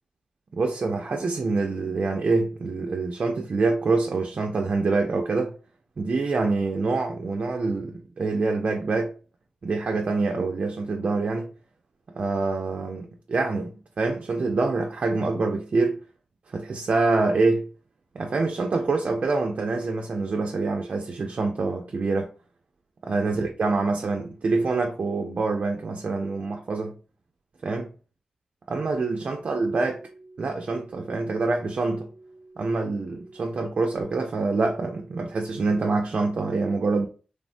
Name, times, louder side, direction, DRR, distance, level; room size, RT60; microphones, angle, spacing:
voice 1, 0.5-5.5 6.0-9.1 9.6-11.5 12.2-16.0 16.5-17.7 18.1-22.3 23.1-26.9 27.6-27.9 28.7-30.0 30.4-32.1 32.6-37.1, right 3 dB, 60° right, 0.4 m, -26 dB
sound 1, 28.9-34.0, right 2 dB, ahead, 0.6 m, -49 dB
3.2 x 2.1 x 2.5 m
cardioid pair, 65°, 2 cm